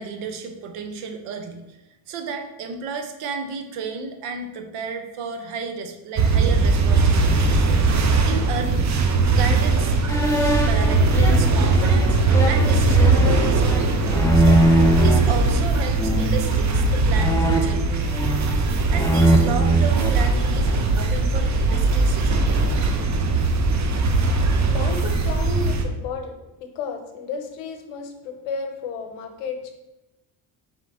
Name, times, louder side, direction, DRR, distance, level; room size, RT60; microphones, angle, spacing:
voice 1, 0.0-1.8 2.1-7.6 8.2-8.9 9.3-10.0 10.4-12.2 12.4-13.8 14.3-14.7 15.0-18.1 18.9-22.6, right 5 dB, 85° right, 6 dB, 0.8 m, -32 dB
sound 1, 6.2-25.8, right 3 dB, 35° right, 0.6 m, -20 dB
sound 2, 10.1-15.3 16.0-16.5 17.1-18.6 18.9-20.9, right 1 dB, 10° left, 0.3 m, -21 dB
voice 2, 24.7-26.3 26.6-29.7, left 5 dB, 85° left, 5 dB, 0.8 m, -32 dB
3.8 x 3.1 x 3.5 m, 0.96 s
supercardioid pair, 75°, 50 cm